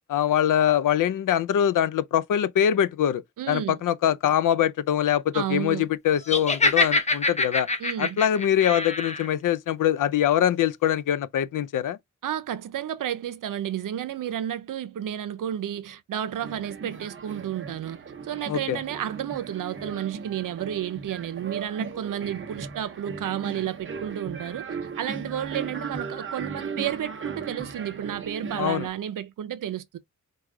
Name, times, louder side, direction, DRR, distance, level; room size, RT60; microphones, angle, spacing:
voice 1, 0.1-7.7 8.0-12.0 18.5-18.8 28.6-28.9, left 10 dB, 80° left, 0.5 m, -23 dB
voice 2, 3.4-3.8 5.3-5.9 7.8-8.2 12.2-18.0 18.2-30.0, right 10 dB, 90° right, 0.6 m, -31 dB
Laughter, 6.3-9.3, left 3 dB, 20° left, 0.6 m, -25 dB
sound 1, 16.3-28.9, right 5 dB, 40° right, 0.8 m, -37 dB
4.7 x 2.3 x 3.6 m
wide cardioid pair, 165°, 31 cm